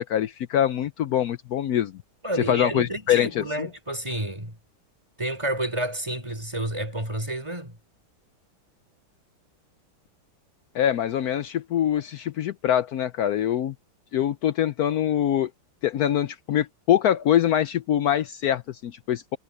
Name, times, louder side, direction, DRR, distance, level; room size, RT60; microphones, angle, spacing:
voice 1, 0.0-1.9 2.5-3.7 10.7-13.7 14.1-15.5 15.8-19.4, left 10 dB, 85° left, 0.8 m, -24 dB
voice 2, 2.2-4.6 5.2-7.8, right 1 dB, 15° right, 4.5 m, -30 dB
omnidirectional pair, 2.4 m